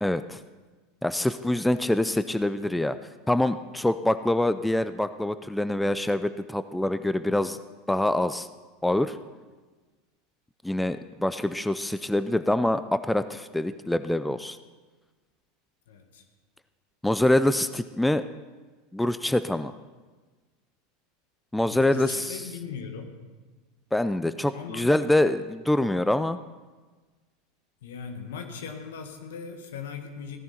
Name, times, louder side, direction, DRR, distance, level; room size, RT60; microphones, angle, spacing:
voice 1, 0.0-0.4 1.0-3.0 3.3-7.6 7.9-8.5 8.8-9.2 10.6-14.6 17.0-18.2 18.9-19.7 21.5-22.4 23.9-26.4, left 1 dB, 5° left, 12 dB, 0.5 m, -25 dB
voice 2, 15.9-16.2 21.7-23.1 24.5-25.0 27.8-30.4, left 6 dB, 75° left, 6 dB, 1.5 m, -39 dB
16.0 x 10.5 x 4.3 m, 1.3 s
hypercardioid pair, 90°, 0 cm